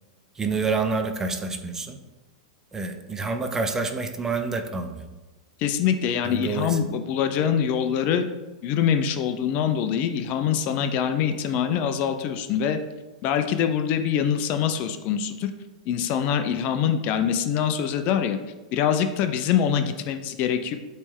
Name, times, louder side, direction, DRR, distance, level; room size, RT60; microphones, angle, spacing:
voice 1, 0.4-2.0 2.7-5.1 6.2-6.8, right 4 dB, 15° right, 6 dB, 0.6 m, -28 dB
voice 2, 5.6-8.3 8.6-12.8 13.2-15.5 15.9-18.4 18.7-20.8, left 8 dB, 45° left, 8 dB, 0.5 m, -24 dB
8.1 x 3.3 x 3.6 m, 1.1 s
hypercardioid pair, 125°, 4 cm